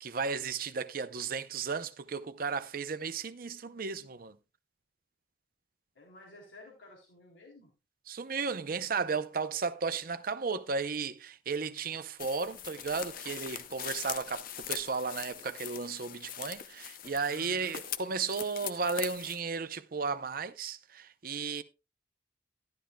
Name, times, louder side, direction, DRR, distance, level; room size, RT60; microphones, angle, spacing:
voice 1, 0.0-4.4 8.1-21.6, right 5 dB, 50° right, 0.6 m, -34 dB
voice 2, 6.0-7.7 17.3-17.8, left 2 dB, 80° left, 3.5 m, -53 dB
sound 1, 12.2-19.4, left 10 dB, 50° left, 0.6 m, -42 dB
12.5 x 11.5 x 2.3 m
head